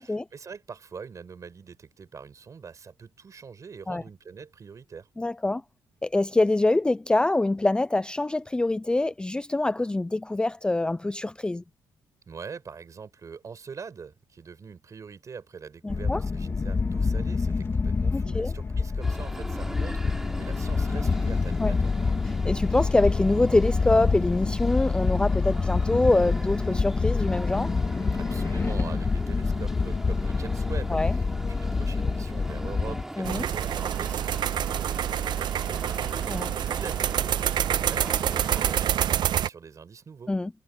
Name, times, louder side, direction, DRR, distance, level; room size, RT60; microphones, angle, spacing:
voice 1, 0.0-5.1 12.3-22.1 28.1-40.3, right 6 dB, 40° right, 6.9 m, -43 dB
voice 2, 5.2-5.6 6.0-11.6 15.8-16.2 18.1-18.5 21.6-21.7 22.2-27.7 30.9-31.1 33.2-33.5 36.3-36.5 40.3-40.5, left 2 dB, 10° left, 0.5 m, -25 dB
sound 1, 15.9-33.0, left 4 dB, 30° left, 2.1 m, -27 dB
sound 2, 19.0-38.9, right 1 dB, 5° right, 3.5 m, -40 dB
sound 3, 33.2-39.5, right 10 dB, 65° right, 0.8 m, -27 dB
cardioid pair, 100°, 8 cm